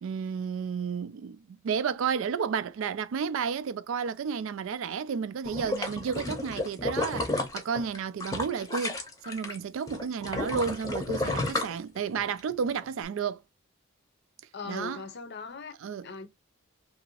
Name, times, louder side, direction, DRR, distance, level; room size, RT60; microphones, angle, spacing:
voice 1, 0.0-13.4 14.7-15.0 15.8-16.3, right 6 dB, 65° right, 0.3 m, -32 dB
sound 1, 5.4-9.6 9.9-12.4 12.8-12.9, left 2 dB, 15° left, 0.7 m, -32 dB
voice 2, 14.5-15.7 16.0-16.3, left 4 dB, 50° left, 0.6 m, -39 dB
2.9 x 2.7 x 2.8 m
head